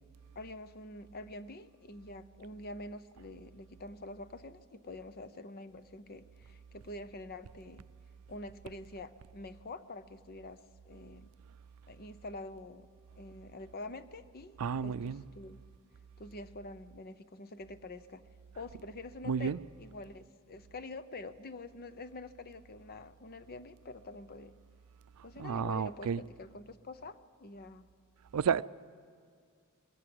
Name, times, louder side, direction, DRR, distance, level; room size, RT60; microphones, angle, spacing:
voice 1, 0.3-7.8 8.3-11.3 11.9-12.9 13.2-15.6 16.2-18.2 18.5-24.6 25.2-27.9, left 2 dB, 45° left, 0.7 m, -46 dB
voice 2, 14.6-15.2 19.3-19.6 25.4-26.2 28.3-28.6, right 6 dB, 80° right, 0.4 m, -31 dB
21.5 x 17.0 x 7.9 m
head